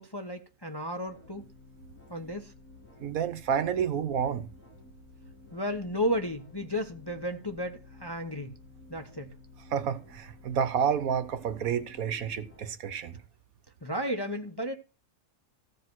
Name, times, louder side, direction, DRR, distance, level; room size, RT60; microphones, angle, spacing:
voice 1, 0.0-1.5 2.1-2.5 5.5-8.5 8.9-9.3 13.8-14.7, equal, 20° left, 0.8 m, -33 dB
sound 1, 1.1-12.6, left 2 dB, 70° left, 3.7 m, -53 dB
voice 2, 3.0-4.5 9.7-13.2, right 7 dB, 65° right, 1.3 m, -29 dB
14.5 x 5.3 x 6.1 m
omnidirectional pair, 1.6 m